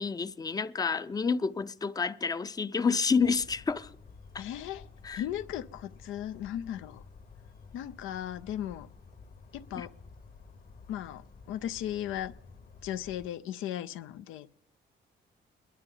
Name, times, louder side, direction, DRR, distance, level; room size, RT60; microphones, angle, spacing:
voice 1, 0.0-3.9 5.0-5.2 9.7-9.9, left 5 dB, 20° left, 0.5 m, -29 dB
Bird vocalization bird call bird song, 3.2-13.3, left 4 dB, 45° left, 1.2 m, -52 dB
voice 2, 4.4-4.8 5.1-7.0 7.7-8.9 9.5-9.9 10.9-11.2 11.5-12.3 12.8-14.5, left 11 dB, 90° left, 0.5 m, -36 dB
29.0 x 10.5 x 3.8 m
cardioid pair, 90°, 20 cm